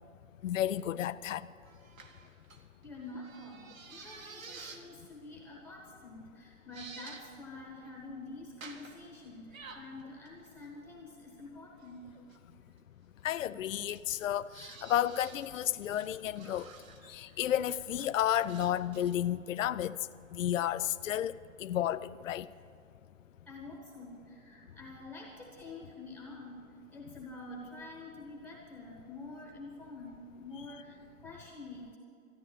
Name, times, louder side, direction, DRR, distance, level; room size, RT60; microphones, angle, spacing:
voice 1, 0.4-1.5 13.2-16.7 17.0-20.0 20.3-21.3 21.6-22.5, left 11 dB, 65° left, 0.5 m, -32 dB
sound 1, 1.6-4.9 5.5-5.7 6.2-6.3 6.7-7.2 7.5-8.0 8.6-9.1 9.5-11.0 12.0-12.4 13.6-19.2, right 4 dB, 70° right, 2.0 m, -51 dB
voice 2, 2.8-12.0 12.6-12.7 23.5-32.0, left 2 dB, 5° left, 1.0 m, -47 dB
14.0 x 9.8 x 8.4 m
hypercardioid pair, 145°, 41 cm